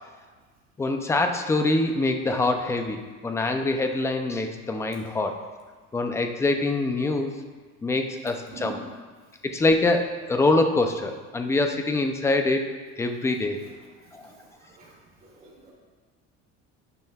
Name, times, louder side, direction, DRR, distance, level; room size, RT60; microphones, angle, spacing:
voice 1, 0.8-5.4 5.9-7.3 7.8-8.8 9.4-13.6 14.1-14.3, left 2 dB, 10° left, 5 dB, 0.3 m, -24 dB
voice 2, 15.4-15.7, right 7 dB, 30° right, -5 dB, 2.6 m, -42 dB
12.0 x 9.0 x 2.3 m, 1.4 s
cardioid pair, 170°, 32 cm